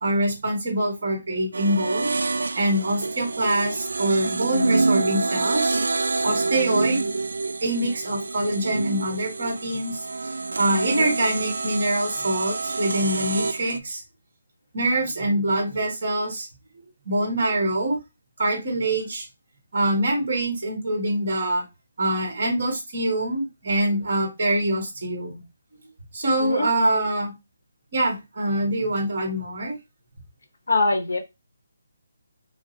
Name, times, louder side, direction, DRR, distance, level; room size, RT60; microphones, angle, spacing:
voice 1, 0.0-2.1 2.5-5.8 6.2-7.1 7.6-10.0 10.6-14.0 14.7-16.5 16.7-18.0 18.4-19.2 19.7-21.6 22.0-25.4 26.1-27.3 27.9-29.7, right 1 dB, 40° right, 1 dB, 1.6 m, -24 dB
sound 1, 1.5-13.8, right 3 dB, 85° right, 0.3 m, -27 dB
voice 2, 26.4-26.7 30.7-31.2, left 3 dB, 75° left, 7 dB, 1.0 m, -23 dB
5.1 x 2.1 x 2.7 m, 0.22 s
hypercardioid pair, 175°, 0 cm